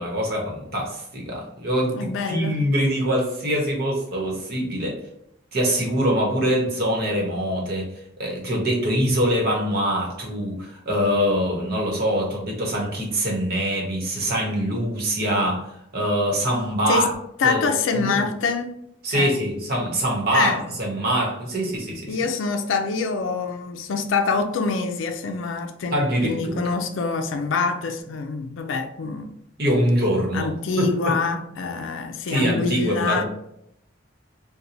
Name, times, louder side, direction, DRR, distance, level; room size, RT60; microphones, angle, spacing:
voice 1, 0.0-5.0 5.5-7.9 8.2-15.7 15.9-17.1 17.4-18.3 19.0-22.2 25.9-26.7 29.6-31.2 32.3-33.2, equal, 55° right, 1.0 m, -24 dB
voice 2, 1.9-2.6 16.9-17.1 17.4-18.7 19.1-19.4 20.3-20.7 22.1-29.3 30.3-33.2, left 4 dB, 80° left, 0.4 m, -25 dB
4.3 x 2.2 x 2.6 m
head